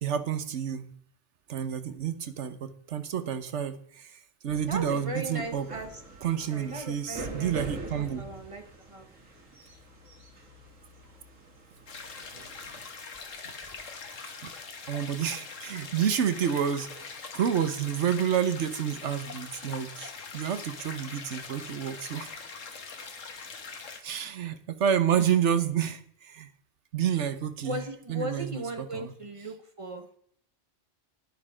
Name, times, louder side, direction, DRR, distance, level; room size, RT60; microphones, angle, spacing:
voice 1, 0.0-0.9 1.5-5.7 6.2-8.2 14.4-14.5 14.9-17.0 17.3-22.3 24.0-26.5 26.9-29.1 29.4-29.5, right 8 dB, 70° right, 11 dB, 1.2 m, -29 dB
sound 1, 4.5-12.9, right 2 dB, 85° right, 2.4 m, -44 dB
voice 2, 4.7-5.9 6.5-7.6 8.2-8.6 8.9-9.1 27.6-30.1, right 1 dB, 25° right, 6 dB, 1.3 m, -37 dB
sound 2, 11.9-24.0, left 5 dB, 90° left, 1.7 m, -42 dB
11.0 x 9.7 x 5.0 m, 0.65 s
omnidirectional pair, 1.3 m